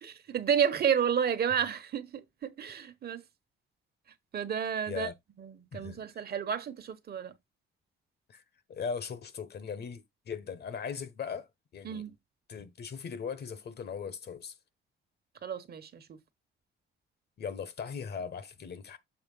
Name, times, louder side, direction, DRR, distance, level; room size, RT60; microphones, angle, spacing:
voice 1, 0.0-3.2 4.3-5.1 5.4-7.3 11.8-12.1 15.4-16.2, right 8 dB, 55° right, 1.1 m, -31 dB
voice 2, 5.7-6.3 8.3-8.4 8.7-12.0 12.5-14.5 17.4-19.0, left 6 dB, 55° left, 1.2 m, -39 dB
7.1 x 3.2 x 5.4 m
cardioid pair, 90°, 20 cm